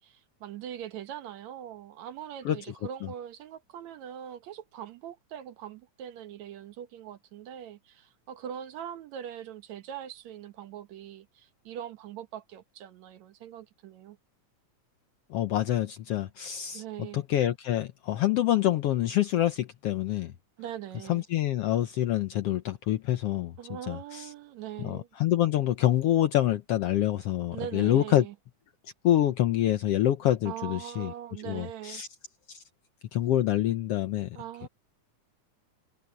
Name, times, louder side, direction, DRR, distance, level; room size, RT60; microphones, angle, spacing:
voice 1, 0.0-14.2 16.7-17.2 20.6-21.2 23.6-25.1 27.5-28.3 30.5-32.0 34.3-34.7, right 10 dB, 70° right, 2.4 m, -41 dB
voice 2, 15.3-16.8 17.1-20.3 21.1-23.5 23.9-24.3 24.8-28.3 29.0-31.1 31.4-32.1 32.5-32.6 33.1-34.4, left 13 dB, 70° left, 1.5 m, -26 dB
omnidirectional pair, 3.4 m